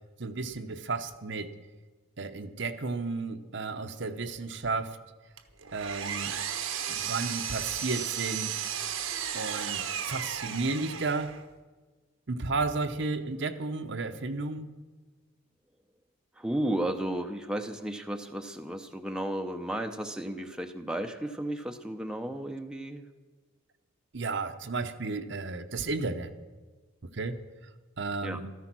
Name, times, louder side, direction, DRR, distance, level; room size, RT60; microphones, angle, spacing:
voice 1, 0.2-1.6 2.2-5.0 5.7-6.3 6.9-8.6 9.3-11.3 12.3-14.7 24.1-26.3 27.1-27.4 28.0-28.5, right 3 dB, 60° right, 8 dB, 0.9 m, -33 dB
Power tool, 5.4-11.4, right 8 dB, 75° right, 1.1 m, -34 dB
voice 2, 16.4-23.1 28.2-28.4, right 1 dB, 5° right, 4 dB, 0.7 m, -33 dB
14.0 x 14.0 x 6.1 m, 1.3 s
head